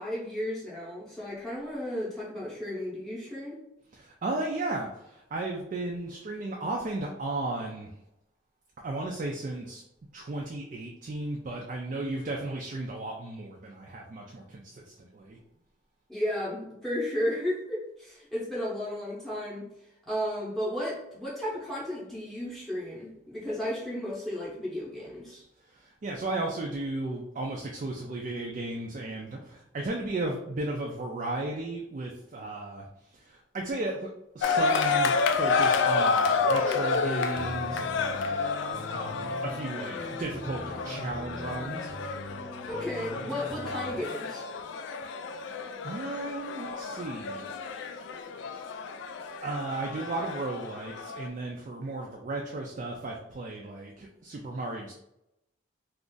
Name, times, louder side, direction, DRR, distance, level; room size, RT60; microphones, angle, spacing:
voice 1, 0.0-3.6 16.1-19.7 20.1-25.4 42.7-44.4, left 1 dB, ahead, -7 dB, 0.7 m, -33 dB
voice 2, 3.9-7.9 8.8-9.8 10.1-15.4 25.6-41.9 45.3-47.5 48.5-48.7 49.4-54.9, right 2 dB, 40° right, 0 dB, 0.3 m, -35 dB
sound 1, 34.4-51.3, left 4 dB, 70° left, 0.3 m, -30 dB
sound 2, 37.3-43.9, equal, 40° left, 0.7 m, -42 dB
2.4 x 2.4 x 3.7 m, 0.83 s
head